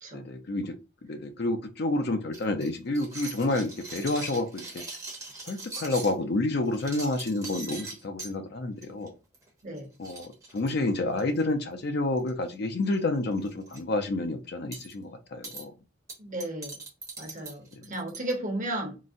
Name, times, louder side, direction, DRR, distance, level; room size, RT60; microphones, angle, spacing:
voice 1, 0.1-0.8 1.0-4.8 5.4-9.1 10.0-15.7 17.7-17.9, left 2 dB, 55° left, 6 dB, 0.5 m, -29 dB
sound 1, 2.3-6.1 6.6-8.3 8.8-9.1 9.3-9.5 9.8-9.9 10.0-11.4 12.2-12.5 12.8-13.0 13.4-13.8 14.7-14.9 15.4-15.6 16.1-18.3, right 3 dB, 15° right, 0.7 m, -41 dB
voice 2, 16.2-16.8 17.2-19.0, right 1 dB, 40° right, 2 dB, 0.9 m, -34 dB
3.8 x 2.1 x 2.5 m, 0.30 s
head